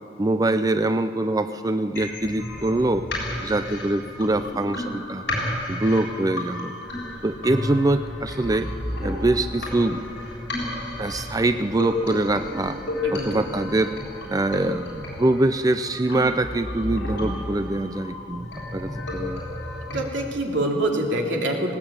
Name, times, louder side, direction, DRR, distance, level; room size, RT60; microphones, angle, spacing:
voice 1, 0.2-3.1 3.4-5.2 5.7-6.7 7.2-8.7 9.0-10.0 11.0-12.8 13.1-13.9 14.3-19.4, right 2 dB, 20° right, 10 dB, 0.5 m, -24 dB
sound 1, 1.9-19.9, left 1 dB, 65° left, 7.1 m, -32 dB
Hollow space drone, 6.8-15.2, equal, 5° left, 3.6 m, -45 dB
voice 2, 13.0-13.4 19.9-21.7, right 1 dB, 75° right, 1 dB, 3.1 m, -25 dB
19.5 x 18.0 x 8.7 m, 2.7 s
head